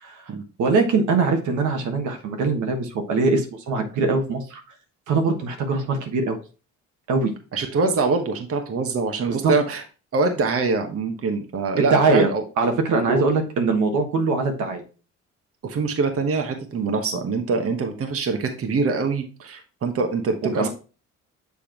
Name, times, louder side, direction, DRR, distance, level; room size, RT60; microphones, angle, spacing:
voice 1, 0.6-4.6 5.1-6.4 7.1-7.3 9.4-9.5 11.8-12.3 12.6-14.8 20.6-20.7, right 3 dB, 80° right, 4 dB, 1.4 m, -22 dB
voice 2, 7.5-9.8 10.1-12.4 13.1-13.2 15.6-20.7, right 4 dB, 50° right, 5 dB, 1.1 m, -24 dB
7.2 x 3.5 x 4.4 m, 0.35 s
cardioid pair, 90°, 30 cm